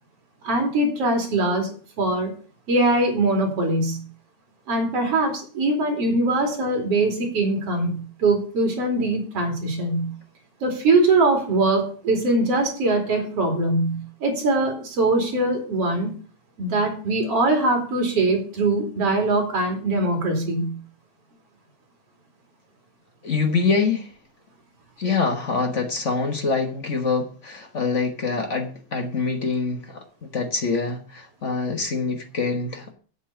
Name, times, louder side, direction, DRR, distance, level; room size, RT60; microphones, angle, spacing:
voice 1, 0.4-2.3 2.7-4.0 4.7-10.1 10.6-16.1 16.6-20.7, right 2 dB, 50° right, 3 dB, 3.8 m, -22 dB
voice 2, 23.2-24.1 25.0-32.9, left 4 dB, 65° left, 5 dB, 0.7 m, -25 dB
8.5 x 8.4 x 6.8 m, 0.40 s
omnidirectional pair, 3.4 m